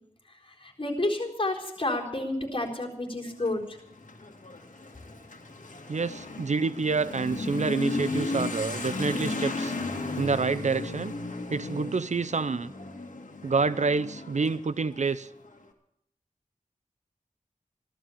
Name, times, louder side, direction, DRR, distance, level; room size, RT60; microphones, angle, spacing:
voice 1, 0.4-3.8, left 2 dB, 40° left, 0 dB, 4.1 m, -30 dB
Motorcycle / Accelerating revving vroom, 3.3-15.6, left 2 dB, 70° left, 2.1 m, -35 dB
voice 2, 5.9-9.7 10.2-11.1 11.5-12.7 13.4-15.3, right 4 dB, 60° right, 16 dB, 0.6 m, -28 dB
15.0 x 13.0 x 7.2 m, 0.74 s
wide cardioid pair, 70°, 13 cm